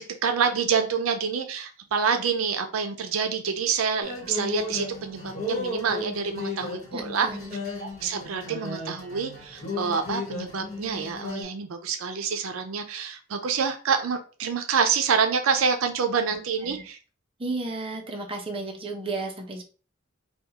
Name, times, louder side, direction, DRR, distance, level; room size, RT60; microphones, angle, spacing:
voice 1, 0.2-7.3 7.8-17.0, right 6 dB, 80° right, 0.5 m, -27 dB
sound 1, 4.0-11.4, left 2 dB, 35° left, 1.2 m, -34 dB
voice 2, 6.9-7.6 16.7-16.8 17.4-19.6, right 3 dB, 25° right, 0.6 m, -33 dB
3.5 x 2.3 x 2.8 m
head